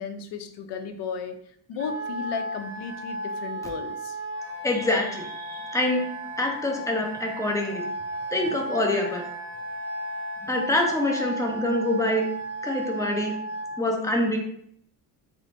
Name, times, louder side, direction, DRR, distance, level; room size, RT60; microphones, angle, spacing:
voice 1, 0.0-1.4 1.7-4.2, left 6 dB, 75° left, 7 dB, 0.6 m, -34 dB
Wind instrument woodwind instrument, 1.8-13.8, right 1 dB, 35° right, 0.7 m, -34 dB
voice 2, 4.6-6.0 6.4-7.9 8.3-9.2 10.4-12.2 12.6-13.3 13.8-14.4, left 1 dB, 10° left, 0 dB, 0.6 m, -25 dB
3.7 x 2.1 x 3.3 m, 0.67 s
cardioid pair, 115°, 42 cm